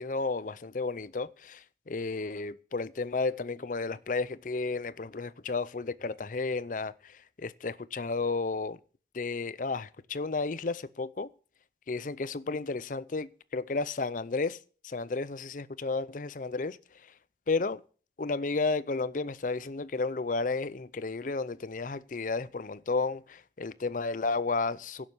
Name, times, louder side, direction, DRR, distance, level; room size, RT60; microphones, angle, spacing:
voice 1, 0.0-8.8 9.1-11.3 11.9-14.6 14.8-16.8 17.5-17.8 18.2-25.1, left 3 dB, 45° left, 0.5 m, -32 dB
11.0 x 7.5 x 8.3 m
head